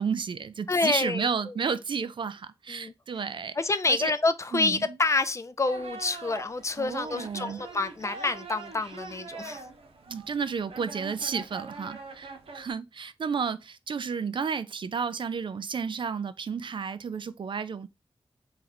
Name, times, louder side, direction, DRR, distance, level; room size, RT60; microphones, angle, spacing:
voice 1, 0.0-3.6 3.9-4.1 4.5-4.8 6.8-7.6 10.1-17.9, right 6 dB, 55° right, 0.4 m, -32 dB
voice 2, 0.7-1.7 2.7-2.9 3.6-9.6, left 3 dB, 30° left, 0.3 m, -28 dB
sound 1, 5.6-12.7, right 3 dB, 75° right, 0.8 m, -43 dB
3.2 x 3.0 x 3.8 m
wide cardioid pair, 130°, 10 cm